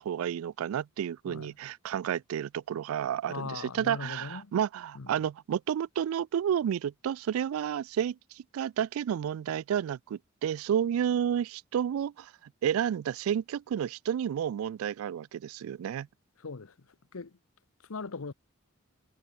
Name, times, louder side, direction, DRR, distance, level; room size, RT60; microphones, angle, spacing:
voice 1, 0.0-12.3 12.6-16.1, right 9 dB, 75° right, 0.3 m, -31 dB
voice 2, 3.3-4.5 4.9-5.1 16.4-16.7 17.1-17.3 17.9-18.3, left 4 dB, 80° left, 0.9 m, -39 dB
head